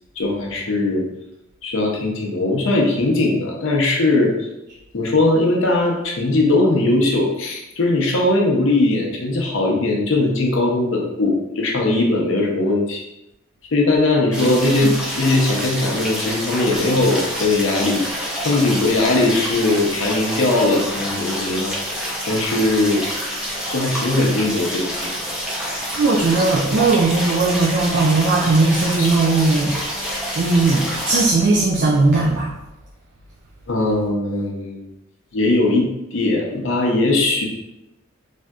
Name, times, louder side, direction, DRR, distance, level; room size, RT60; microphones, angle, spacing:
voice 1, 0.2-1.0 1.6-4.3 4.9-13.0 13.7-18.0 18.4-21.7 22.3-23.0 23.7-25.1 28.4-28.5 29.0-29.1 33.7-34.9 35.3-37.5, left 2 dB, 70° left, 0 dB, 0.6 m, -19 dB
sound 1, 14.3-31.2, equal, 5° right, 0.6 m, -27 dB
voice 2, 14.4-14.9 25.9-29.8 30.4-32.5, right 3 dB, 55° right, -3 dB, 0.4 m, -18 dB
3.4 x 2.6 x 2.3 m, 0.90 s
head